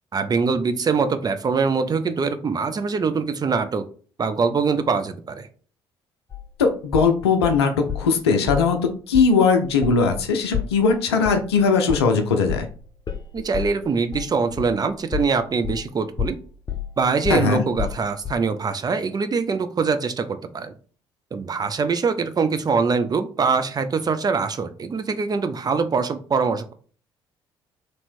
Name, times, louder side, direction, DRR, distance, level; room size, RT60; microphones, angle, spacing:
voice 1, 0.1-3.9 4.2-5.5 13.3-16.4 17.0-20.7 21.3-26.7, right 5 dB, 30° right, 9 dB, 0.5 m, -23 dB
sound 1, 6.3-8.1 8.5-8.8 9.1-9.3 9.6-15.9 16.2-18.5, left 9 dB, 30° left, 0.7 m, -31 dB
voice 2, 6.6-8.8 9.1-12.7 17.3-17.6, left 5 dB, 80° left, 5 dB, 0.6 m, -19 dB
3.2 x 2.8 x 4.3 m, 0.42 s
figure-of-eight pair, 50°, 13 cm